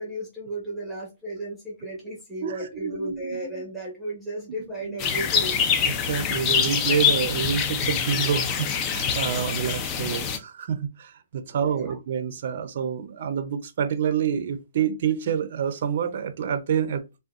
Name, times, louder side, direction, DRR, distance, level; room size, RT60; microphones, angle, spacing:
voice 1, 0.0-5.8 11.5-12.0, right 1 dB, 5° left, 1.2 m, -34 dB
voice 2, 2.4-3.4 5.9-17.0, right 8 dB, 55° right, 0.5 m, -27 dB
sound 1, 5.0-10.4, left 7 dB, 25° left, 0.4 m, -25 dB
3.6 x 2.2 x 2.4 m
hypercardioid pair, 150°, 0 cm